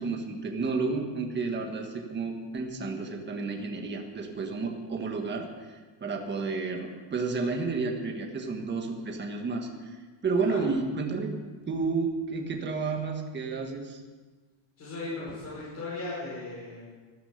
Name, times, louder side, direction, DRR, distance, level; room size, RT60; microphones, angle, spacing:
voice 1, 0.0-5.5 6.0-9.7 10.2-11.3 11.7-14.0, right 4 dB, 20° right, 3 dB, 1.5 m, -31 dB
voice 2, 14.8-16.9, left 2 dB, 30° left, -8 dB, 5.4 m, -37 dB
13.0 x 12.5 x 6.6 m, 1.4 s
cardioid pair, 170°, 49 cm